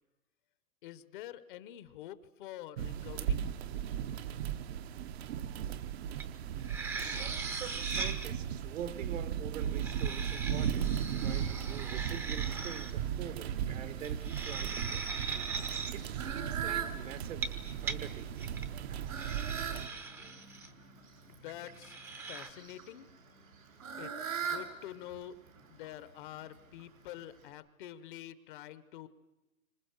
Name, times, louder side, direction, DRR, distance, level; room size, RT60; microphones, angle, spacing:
voice 1, 0.8-3.4 21.3-22.0 22.2-23.1 24.0-25.4 25.7-29.1, left 12 dB, 40° left, 14 dB, 1.0 m, -47 dB
sound 1, 2.8-19.9, right 9 dB, 50° right, 1.0 m, -37 dB
sound 2, 6.2-6.3 6.6-8.3 9.6-12.9 14.0-15.9 17.2-18.0 18.4-18.6 19.2-20.7 21.7-22.5, right 4 dB, 5° right, 0.8 m, -40 dB
voice 2, 7.0-15.1 15.9-17.5 17.8-18.5, right 9 dB, 65° right, 12 dB, 1.6 m, -45 dB
Fowl, 12.1-27.5, right 7 dB, 85° right, 6.5 m, -44 dB
28.0 x 25.5 x 6.5 m, 1.0 s
hypercardioid pair, 160°, 40 cm